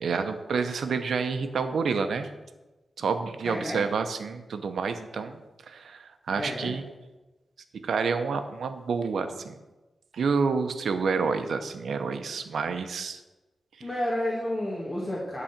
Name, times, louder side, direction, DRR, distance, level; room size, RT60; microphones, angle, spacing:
voice 1, 0.0-2.3 3.0-5.4 5.7-6.8 7.8-9.5 10.1-13.2, right 5 dB, 80° right, 8 dB, 0.8 m, -28 dB
voice 2, 3.4-3.9 6.3-6.7 13.8-15.4, left 1 dB, 30° left, -5 dB, 2.1 m, -31 dB
11.5 x 4.0 x 7.3 m, 1.1 s
wide cardioid pair, 95°, 0 cm